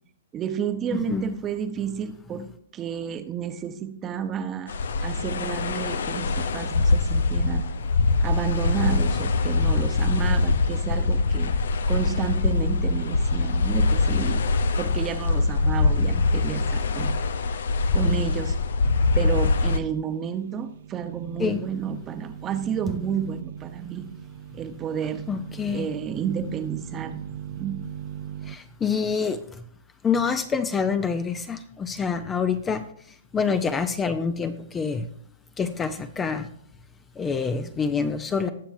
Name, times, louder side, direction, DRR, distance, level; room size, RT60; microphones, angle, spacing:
voice 1, 0.3-2.4 2.7-7.6 8.2-11.5 11.9-14.4 14.8-17.1 17.9-18.6 19.1-24.1 24.6-25.2 25.7-27.3 27.6-27.8, right 8 dB, 25° right, 9 dB, 0.9 m, -31 dB
voice 2, 0.9-1.4 2.4-2.5 21.4-21.6 25.3-25.9 28.5-29.4 30.0-32.9 33.3-35.1 35.6-36.5 37.2-38.5, left 5 dB, 15° left, 10 dB, 0.6 m, -26 dB
sound 1, 4.7-19.8, left 3 dB, 75° left, 0.6 m, -23 dB
sound 2, 20.0-28.6, right 10 dB, 60° right, 0.5 m, -39 dB
19.5 x 7.1 x 2.6 m, 0.66 s
hypercardioid pair, 135°, 0 cm